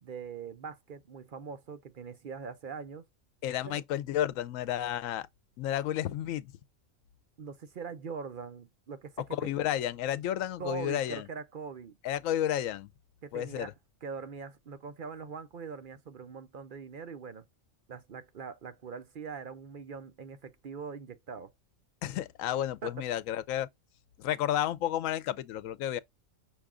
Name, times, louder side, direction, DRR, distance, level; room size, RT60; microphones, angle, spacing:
voice 1, 0.0-3.0 3.6-3.8 7.4-9.5 10.6-12.0 13.2-13.7 14.0-17.4 17.9-21.5 22.8-23.1, right 5 dB, 50° right, 0.7 m, -42 dB
voice 2, 3.4-5.3 5.6-6.5 9.3-11.2 12.0-12.9 13.3-13.7 22.0-23.7 24.2-26.0, left 11 dB, 85° left, 1.0 m, -31 dB
6.0 x 2.3 x 3.6 m
omnidirectional pair, 1.4 m